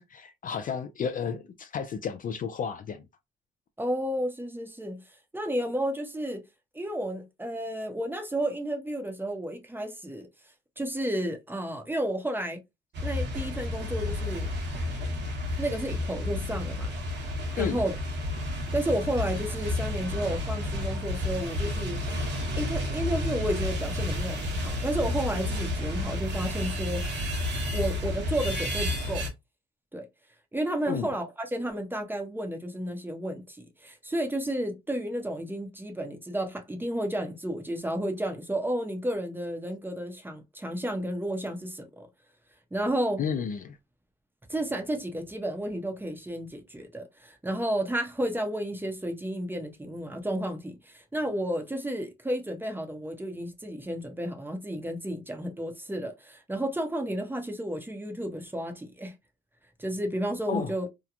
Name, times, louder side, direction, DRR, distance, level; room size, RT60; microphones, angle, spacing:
voice 1, 0.0-3.0 17.6-17.8 30.9-31.1 43.2-43.8 60.5-60.7, left 6 dB, 45° left, 0.4 m, -32 dB
voice 2, 3.8-5.0 5.3-6.4 6.7-10.3 10.8-12.6 13.0-14.5 15.6-16.9 17.6-18.0 18.7-22.0 22.6-27.3 27.7-29.2 29.9-30.1 30.5-42.1 42.7-43.2 44.5-59.1 59.8-60.9, right 1 dB, 10° right, 0.7 m, -32 dB
sound 1, 12.9-29.3, left 1 dB, 60° right, 1.0 m, -31 dB
2.9 x 2.1 x 2.4 m
cardioid pair, 90°, 20 cm